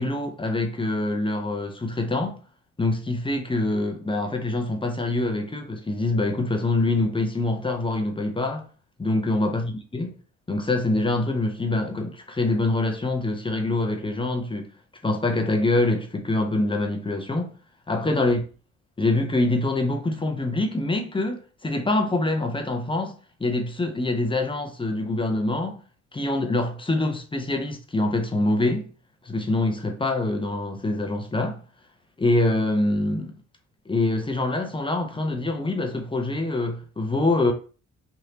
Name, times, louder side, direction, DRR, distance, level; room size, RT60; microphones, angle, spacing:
voice 1, 0.0-2.4 2.8-8.7 9.0-10.1 10.5-14.7 15.0-17.5 17.9-18.4 19.0-23.1 23.4-25.8 26.1-28.9 29.2-31.6 32.2-33.4 33.9-37.5, left 2 dB, 15° left, 0.7 m, -25 dB
3.2 x 2.7 x 2.8 m
hypercardioid pair, 55°, 37 cm